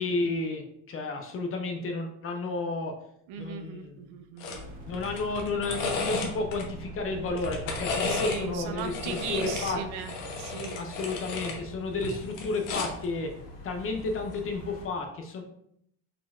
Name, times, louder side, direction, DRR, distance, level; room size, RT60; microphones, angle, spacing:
voice 1, 0.0-2.9 3.4-4.0 4.9-9.8 10.8-13.3 13.6-15.4, left 3 dB, 30° left, 3 dB, 0.4 m, -32 dB
voice 2, 3.3-4.7 8.1-10.1 10.4-10.8, right 7 dB, 60° right, 7 dB, 0.6 m, -37 dB
sound 1, 4.4-4.6 4.9-6.6 7.3-8.4 8.8-11.6 11.9-13.0 14.2-14.4, left 4 dB, 70° left, 1.1 m, -34 dB
sound 2, 4.5-9.9, equal, 20° right, 1.3 m, -45 dB
sound 3, 5.7-14.9, right 1 dB, 50° left, 1.2 m, -46 dB
4.8 x 3.8 x 2.4 m, 0.73 s
cardioid pair, 155°, 43 cm